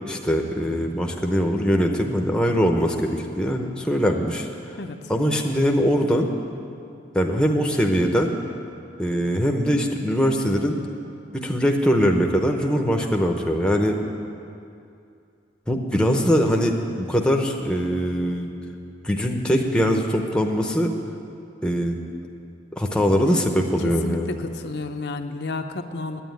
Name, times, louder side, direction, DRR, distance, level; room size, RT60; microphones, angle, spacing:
voice 1, 0.1-4.5 5.1-6.3 7.1-8.4 9.0-10.9 11.3-14.0 15.7-18.5 19.0-21.0 21.6-22.0 22.7-24.4, equal, 5° left, 2 dB, 0.7 m, -22 dB
voice 2, 4.8-5.1 23.8-26.2, left 3 dB, 65° left, 6 dB, 0.6 m, -31 dB
9.4 x 9.1 x 9.1 m, 2.5 s
head